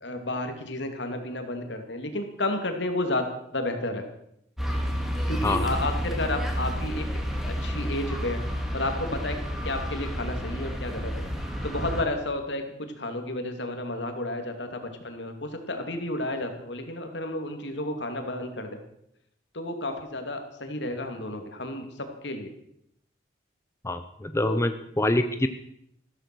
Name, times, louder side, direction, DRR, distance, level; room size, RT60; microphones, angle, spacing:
voice 1, 0.0-3.3 3.5-4.1 5.3-7.1 7.5-9.4 9.6-11.3 11.6-18.8 19.5-22.5 24.4-24.6, left 1 dB, 70° left, 6 dB, 2.6 m, -32 dB
sound 1, 4.6-12.0, equal, ahead, 2.3 m, -30 dB
voice 2, 23.8-25.5, left 1 dB, 15° left, 9 dB, 0.6 m, -25 dB
14.5 x 13.5 x 6.2 m, 0.74 s
head